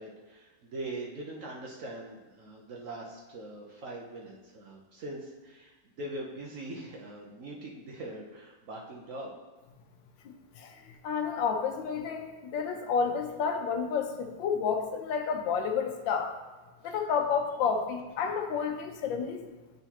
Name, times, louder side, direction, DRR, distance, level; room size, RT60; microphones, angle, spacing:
voice 1, 0.0-9.3 16.8-16.9, right 1 dB, 55° right, -2 dB, 1.0 m, -42 dB
voice 2, 10.2-10.7 11.0-16.3 16.8-19.4, left 6 dB, 85° left, 5 dB, 1.4 m, -30 dB
9.4 x 3.9 x 2.9 m, 1.2 s
omnidirectional pair, 2.0 m